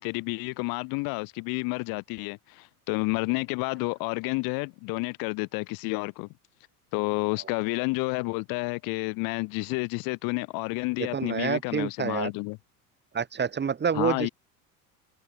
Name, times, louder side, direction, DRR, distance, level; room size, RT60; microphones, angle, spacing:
voice 1, 0.0-6.3 6.9-12.6 14.0-14.3, left 27 dB, 50° left, 2.4 m, -30 dB
voice 2, 11.0-12.3 13.1-14.3, right 6 dB, 25° right, 2.4 m, -28 dB
figure-of-eight pair, 70°, 45 cm